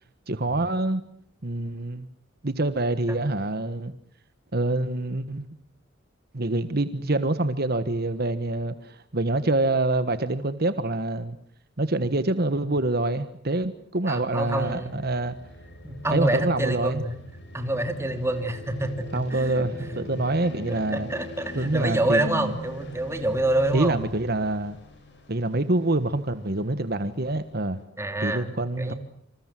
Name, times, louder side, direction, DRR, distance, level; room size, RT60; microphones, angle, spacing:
voice 1, 0.3-1.0 1.4-2.1 2.4-3.9 4.5-5.5 6.3-11.4 11.8-15.3 16.1-17.0 19.1-21.1 21.5-22.5 23.7-24.8 25.3-27.8 28.2-28.9, right 2 dB, 55° right, 1.4 m, -26 dB
voice 2, 14.1-15.0 15.8-17.2 17.5-19.7 20.1-20.2 20.7-24.0 28.0-28.5 28.8-28.9, right 1 dB, 15° right, 3.2 m, -27 dB
sound 1, 14.4-27.8, equal, 60° left, 7.3 m, -43 dB
28.0 x 27.0 x 7.6 m
head